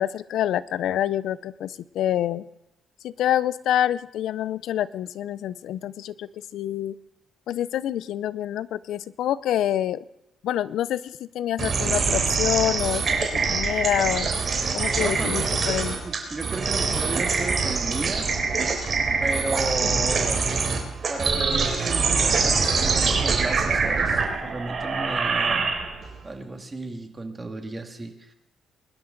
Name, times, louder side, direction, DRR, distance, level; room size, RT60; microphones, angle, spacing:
voice 1, 0.0-2.4 3.0-6.9 7.5-10.0 10.4-13.0 13.5-14.3 14.7-16.0, left 11 dB, 80° left, 18 dB, 0.5 m, -27 dB
sound 1, 11.6-26.1, right 4 dB, 50° right, 3.5 m, -24 dB
voice 2, 14.6-15.4 15.9-18.3 19.2-20.5 21.1-25.7 26.2-28.3, right 2 dB, 25° right, 4 dB, 2.0 m, -34 dB
22.0 x 11.5 x 3.9 m, 0.88 s
cardioid pair, 90°, 0 cm